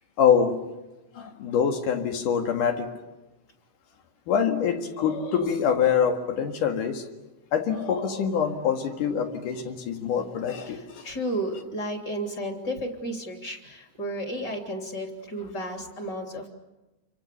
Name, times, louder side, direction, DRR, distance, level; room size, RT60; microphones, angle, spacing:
voice 1, 0.2-0.7 1.2-3.0 4.3-7.1 7.5-11.1, left 7 dB, 85° left, 5 dB, 3.5 m, -25 dB
voice 2, 10.6-16.5, right 1 dB, 30° left, 3 dB, 3.6 m, -33 dB
29.0 x 24.0 x 6.9 m, 1.1 s
omnidirectional pair, 3.6 m